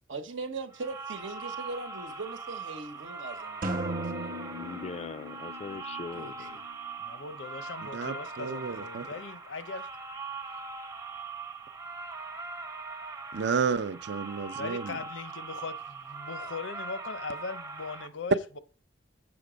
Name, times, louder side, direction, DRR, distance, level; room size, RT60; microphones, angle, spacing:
voice 1, 0.1-4.4 6.1-6.6, right 3 dB, 85° right, 1.0 m, -40 dB
sound 1, 0.7-18.1, right 4 dB, 20° right, 0.6 m, -41 dB
sound 2, 3.6-7.4, right 1 dB, 50° right, 1.0 m, -38 dB
voice 2, 4.6-6.6, left 4 dB, 35° left, 0.3 m, -41 dB
voice 3, 7.0-9.9 14.5-18.6, left 4 dB, 85° left, 0.7 m, -40 dB
voice 4, 7.9-9.1 13.3-15.0, right 5 dB, 65° right, 0.5 m, -31 dB
7.8 x 5.9 x 5.1 m
head